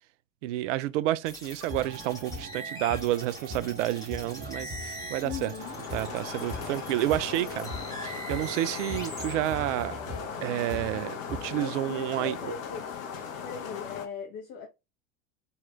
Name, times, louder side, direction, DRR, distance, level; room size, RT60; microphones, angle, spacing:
voice 1, 0.4-5.5 5.9-7.7 8.0-10.0 10.4-12.4, right 14 dB, 65° right, 0.5 m, -30 dB
sound 1, 1.2-9.3, equal, 10° left, 2.2 m, -43 dB
sound 2, 1.7-11.6, equal, 25° right, 1.2 m, -41 dB
voice 2, 5.2-5.8 11.5-12.9 13.4-14.7, left 6 dB, 50° left, 1.1 m, -39 dB
sound 3, 5.6-14.1, left 7 dB, 70° left, 1.0 m, -38 dB
4.3 x 4.2 x 2.4 m
hypercardioid pair, 75°, 41 cm